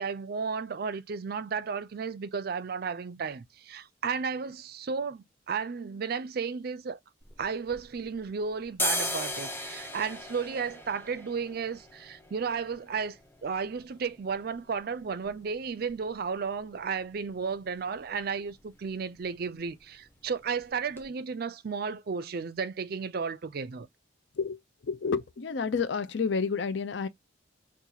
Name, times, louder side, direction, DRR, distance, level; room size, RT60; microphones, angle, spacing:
voice 1, 0.0-7.0 7.4-23.9, right 5 dB, 55° right, 0.4 m, -33 dB
sound 1, 7.2-8.3 8.6-16.3 16.6-16.7 17.0-17.6 17.9-18.1 18.4-18.6 18.9-19.6 19.9-20.1 20.6-20.7 21.0-21.1, left 2 dB, 10° left, 0.7 m, -38 dB
voice 2, 24.9-27.1, left 5 dB, 65° left, 0.5 m, -29 dB
2.8 x 2.4 x 3.9 m
head